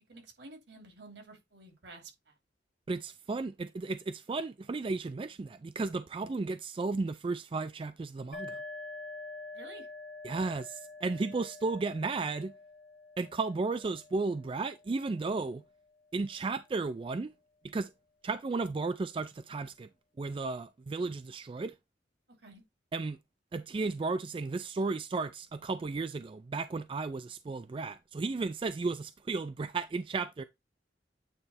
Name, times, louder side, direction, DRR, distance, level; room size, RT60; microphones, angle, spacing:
voice 1, 0.1-2.3 9.5-9.9 22.4-22.6, right 2 dB, 75° right, 2.6 m, -51 dB
voice 2, 2.9-8.6 10.2-12.5 13.2-15.6 16.1-17.3 17.6-17.9 18.2-19.9 20.2-21.7 22.9-23.2 23.5-30.4, right 3 dB, 30° right, 0.3 m, -34 dB
sound 1, 8.3-15.8, left 3 dB, 50° left, 1.4 m, -47 dB
9.0 x 3.2 x 4.2 m
head